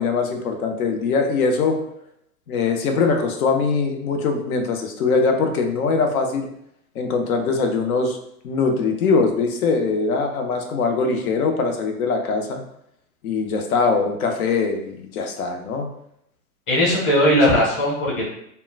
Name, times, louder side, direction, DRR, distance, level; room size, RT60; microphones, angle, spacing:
voice 1, 0.0-1.8 2.5-6.5 7.0-8.2 8.4-12.6 13.2-15.9, left 4 dB, 70° left, 4 dB, 0.7 m, -22 dB
voice 2, 16.7-18.2, equal, 25° left, -5 dB, 1.2 m, -18 dB
3.6 x 2.1 x 2.4 m, 0.74 s
hypercardioid pair, 125°, 44 cm